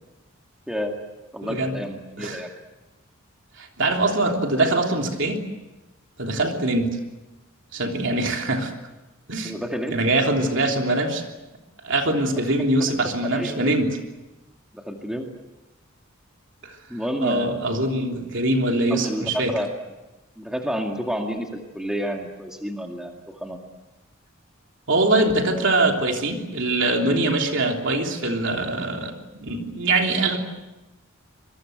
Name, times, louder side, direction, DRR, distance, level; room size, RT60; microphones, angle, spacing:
voice 1, 0.7-1.0 1.3-2.5 9.4-10.0 12.6-12.9 13.3-13.8 14.7-15.3 16.9-17.6 18.9-19.7 20.4-23.6, equal, 5° right, 2 dB, 2.1 m, -30 dB
voice 2, 1.4-1.8 2.2-2.4 3.6-5.4 6.2-7.0 7.7-8.7 9.3-9.5 9.9-11.2 11.8-13.9 16.6-16.8 17.2-19.5 24.9-29.1 29.4-30.4, right 2 dB, 55° right, 3 dB, 3.3 m, -23 dB
26.0 x 22.5 x 7.9 m, 1.0 s
head